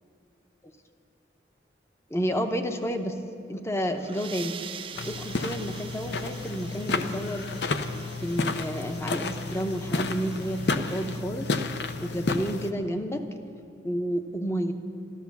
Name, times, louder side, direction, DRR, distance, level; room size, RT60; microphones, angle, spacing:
voice 1, 2.1-3.2 3.5-4.6 5.0-7.5 8.2-11.6 12.0-13.2 13.8-14.7, equal, 15° left, 7 dB, 0.8 m, -30 dB
sound 1, 3.9-11.3, right 7 dB, 30° right, 0.5 m, -45 dB
sound 2, 5.0-12.7, left 3 dB, 65° left, 0.7 m, -31 dB
13.0 x 13.0 x 7.1 m, 2.6 s
head